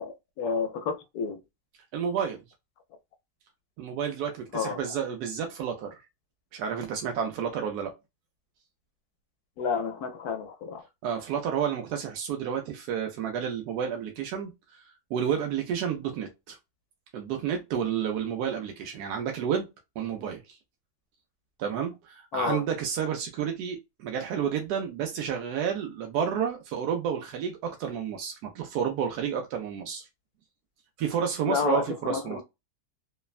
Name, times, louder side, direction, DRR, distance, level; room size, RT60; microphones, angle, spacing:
voice 1, 0.0-1.4 4.5-4.8 9.6-10.8 22.3-22.6 31.5-32.4, left 6 dB, 75° left, 1.0 m, -30 dB
voice 2, 1.9-2.4 3.8-6.0 6.5-7.9 11.0-14.8 15.1-16.6 17.1-19.7 20.0-20.6 21.6-30.1 31.0-32.4, right 8 dB, 85° right, 1.1 m, -30 dB
3.2 x 2.1 x 2.3 m
omnidirectional pair, 1.6 m